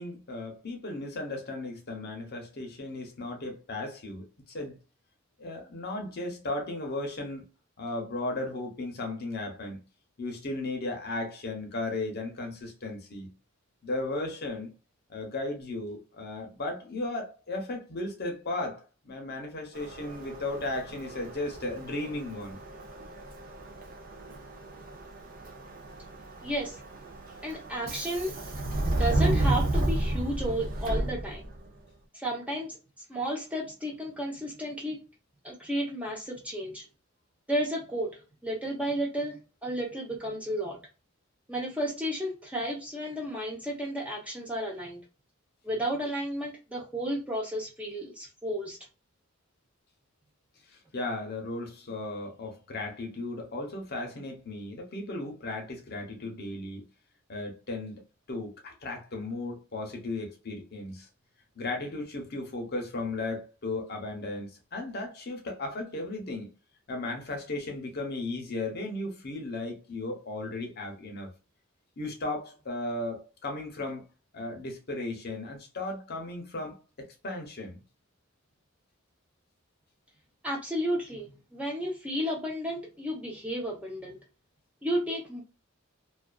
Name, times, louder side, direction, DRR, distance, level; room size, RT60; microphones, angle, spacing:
voice 1, 0.0-4.8 5.4-7.5 7.8-9.8 10.2-13.3 13.8-14.7 15.1-22.6 50.7-56.8 57.3-58.0 58.3-61.1 61.6-66.5 66.9-71.3 72.0-74.1 74.3-77.8, left 2 dB, 50° left, 0.7 m, -35 dB
Subway metro underground, 19.7-31.7, right 1 dB, 45° right, 0.5 m, -32 dB
voice 2, 26.4-26.8 27.4-28.3 28.9-31.5 32.1-32.8 33.1-35.0 35.4-36.8 37.5-40.8 41.5-45.0 45.6-48.8 80.4-84.2 84.8-85.4, equal, 5° right, 0.7 m, -32 dB
2.4 x 2.3 x 2.2 m
head